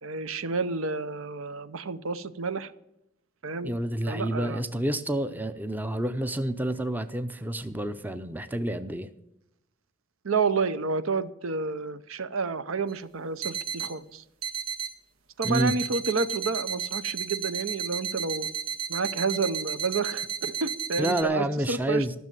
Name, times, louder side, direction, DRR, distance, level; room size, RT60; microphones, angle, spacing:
voice 1, 0.0-2.7 3.4-3.7 4.0-4.6 10.2-14.2 15.4-18.5 18.9-22.1, right 4 dB, 75° right, 13 dB, 0.7 m, -30 dB
voice 2, 3.6-9.1 15.4-15.7 21.0-22.1, right 1 dB, 10° right, 10 dB, 0.6 m, -29 dB
sound 1, 12.9-13.0 13.4-13.9 14.4-14.9 15.4-21.2, right 7 dB, 90° right, 1.6 m, -33 dB
14.0 x 6.6 x 9.2 m, 0.81 s
head